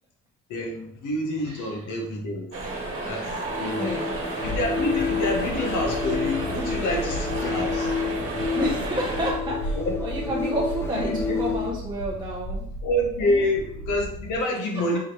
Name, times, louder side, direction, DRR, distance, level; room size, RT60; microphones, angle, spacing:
voice 1, 0.5-2.5 3.0-4.0 4.4-8.0 9.7-10.0 10.9-11.4 12.8-15.0, left 1 dB, 85° left, 1 dB, 1.0 m, -27 dB
sound 1, 2.5-9.3, right 2 dB, 50° right, 1.3 m, -32 dB
sound 2, 3.4-11.8, left 5 dB, 10° left, 0.4 m, -30 dB
voice 2, 3.8-4.1 8.5-12.7 13.2-13.4, equal, 15° right, -3 dB, 0.7 m, -30 dB
sound 3, 4.4-14.4, equal, 55° left, 0.6 m, -35 dB
4.8 x 3.0 x 3.0 m, 0.72 s
cardioid pair, 90°, 30 cm